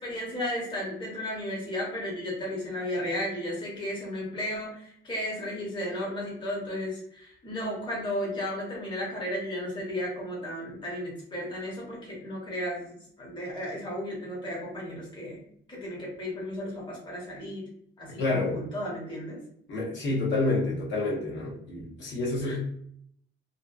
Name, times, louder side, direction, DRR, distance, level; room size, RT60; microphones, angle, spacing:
voice 1, 0.0-15.4 15.7-17.6 18.0-19.4 22.4-22.6, left 1 dB, 20° left, -4 dB, 0.8 m, -34 dB
voice 2, 18.2-18.6 19.7-22.6, left 2 dB, 60° left, -5 dB, 0.9 m, -28 dB
2.7 x 2.2 x 2.4 m, 0.66 s
cardioid pair, 160°, 21 cm